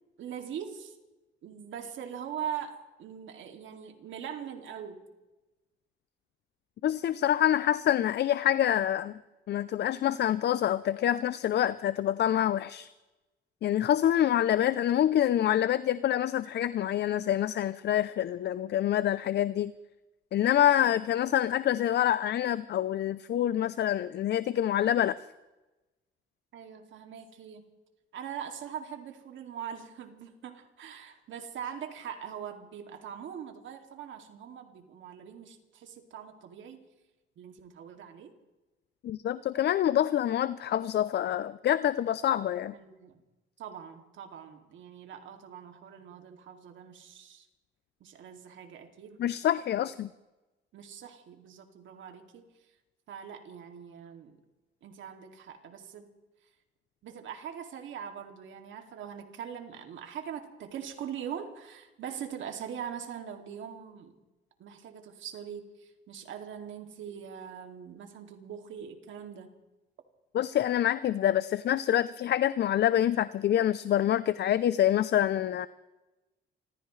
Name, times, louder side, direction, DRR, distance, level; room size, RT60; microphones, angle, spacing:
voice 1, 0.2-1.0 1.4-5.0 26.5-27.6 28.1-36.8 37.4-38.3 42.7-43.2 43.6-47.5 48.0-49.2 49.8-49.9 50.7-52.5 53.1-54.4 54.8-56.1 57.0-64.1 64.6-69.5, right 8 dB, 75° right, 4 dB, 2.4 m, -42 dB
voice 2, 6.8-9.2 9.5-12.9 13.6-19.7 20.3-25.2 39.0-42.7 49.2-50.1 70.3-75.7, left 11 dB, 60° left, 15 dB, 0.5 m, -26 dB
29.0 x 15.0 x 3.2 m, 1.1 s
cardioid pair, 90°, 20 cm